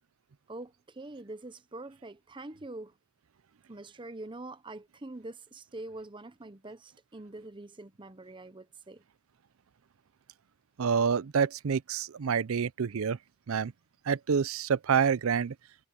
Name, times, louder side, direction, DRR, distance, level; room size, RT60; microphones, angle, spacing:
voice 1, 0.5-2.9 3.7-9.0, right 2 dB, 20° right, 0.8 m, -44 dB
voice 2, 10.8-13.2 13.5-13.7 14.1-15.5, right 6 dB, 75° right, 0.5 m, -27 dB
head